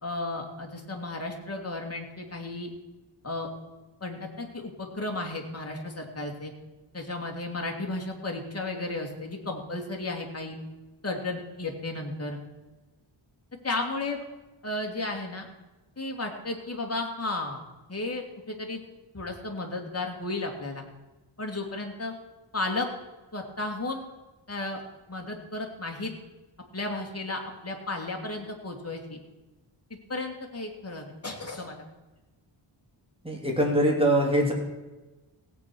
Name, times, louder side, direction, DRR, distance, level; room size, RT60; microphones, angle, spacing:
voice 1, 0.0-2.7 3.2-3.5 4.0-6.5 6.9-10.6 11.0-12.4 13.6-14.2 14.6-15.5 16.0-17.6 17.9-18.8 19.1-20.8 21.4-22.1 22.5-22.9 23.3-24.0 24.5-24.8 25.1-26.1 26.7-29.2 30.1-31.8, left 2 dB, 30° left, 1 dB, 2.5 m, -33 dB
voice 2, 33.2-34.5, right 1 dB, 10° right, -1 dB, 2.9 m, -23 dB
16.5 x 8.5 x 6.2 m, 1.1 s
wide cardioid pair, 115°, 48 cm